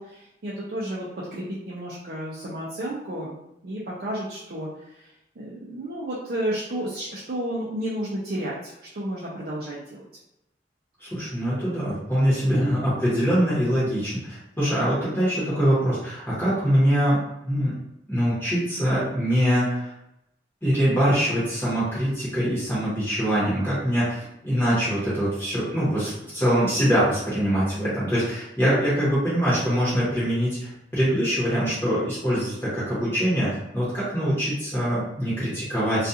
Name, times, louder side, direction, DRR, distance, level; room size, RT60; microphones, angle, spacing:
voice 1, 0.0-3.3 3.6-10.1, right 1 dB, 55° right, -6 dB, 0.5 m, -32 dB
voice 2, 11.0-17.2 17.5-17.7 18.1-19.9 20.6-36.1, equal, 15° left, -10 dB, 1.0 m, -23 dB
2.4 x 2.4 x 2.7 m, 0.86 s
head